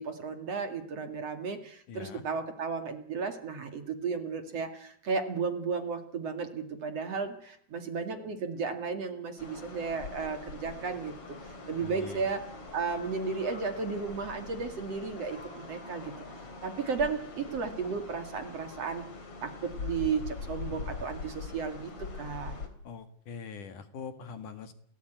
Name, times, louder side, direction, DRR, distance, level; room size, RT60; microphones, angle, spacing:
voice 1, 0.0-11.1 11.7-12.4 12.7-16.1 16.6-19.0 19.4-22.6, right 5 dB, 45° right, 7 dB, 3.0 m, -34 dB
voice 2, 1.9-2.2 11.8-12.2 22.8-24.7, left 6 dB, 60° left, 10 dB, 3.1 m, -43 dB
sound 1, 9.4-22.7, left 4 dB, 40° left, 4.2 m, -43 dB
29.5 x 18.5 x 9.3 m, 0.67 s
omnidirectional pair, 4.2 m